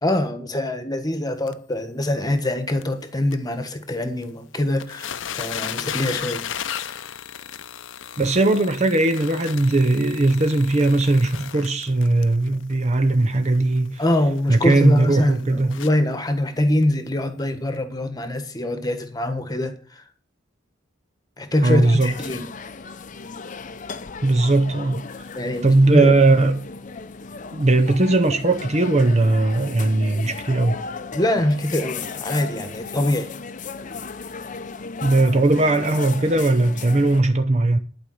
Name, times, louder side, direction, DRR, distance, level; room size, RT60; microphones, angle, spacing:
voice 1, 0.0-6.4 6.7-7.0 14.0-20.0 21.4-22.5 25.3-26.1 31.1-33.3, left 1 dB, 20° left, 1.4 m, -24 dB
sound 1, 1.5-1.6 2.0-2.1 2.4-2.5 2.8-2.9 3.3-3.4 4.2-4.3 4.6-16.2 16.8-16.9 17.4-17.5, left 9 dB, 75° left, 0.7 m, -35 dB
voice 2, 8.2-14.0 14.5-15.8 21.6-22.1 24.2-25.0 25.6-26.6 27.5-30.8 35.0-37.8, right 2 dB, 35° right, 0.8 m, -18 dB
sound 2, 21.6-37.2, left 4 dB, 40° left, 0.7 m, -35 dB
11.5 x 5.1 x 7.8 m
head